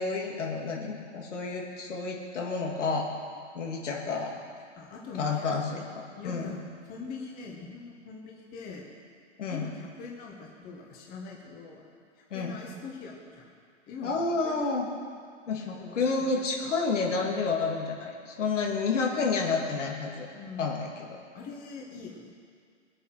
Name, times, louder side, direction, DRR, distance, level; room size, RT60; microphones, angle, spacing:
voice 1, 0.0-3.1 3.5-4.4 5.2-6.5 9.4-9.6 12.3-12.6 14.0-14.9 15.5-20.3 20.6-20.9, left 4 dB, 75° left, 0 dB, 2.8 m, -30 dB
voice 2, 4.8-5.5 6.2-8.9 9.5-13.5 13.9-14.6 15.7-16.4 20.3-20.7 21.3-22.3, left 4 dB, 25° left, -1 dB, 1.7 m, -43 dB
18.5 x 8.6 x 6.0 m, 2.1 s
hypercardioid pair, 140°, 37 cm